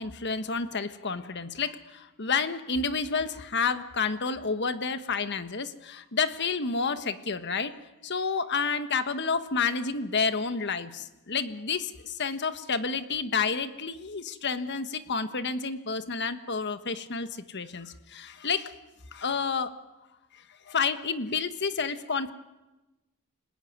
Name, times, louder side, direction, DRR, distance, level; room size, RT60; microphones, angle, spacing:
voice 1, 0.0-7.7 8.0-18.7 19.1-19.8 20.3-22.3, left 5 dB, 50° left, 11 dB, 1.4 m, -30 dB
28.5 x 20.0 x 9.5 m, 1.1 s
head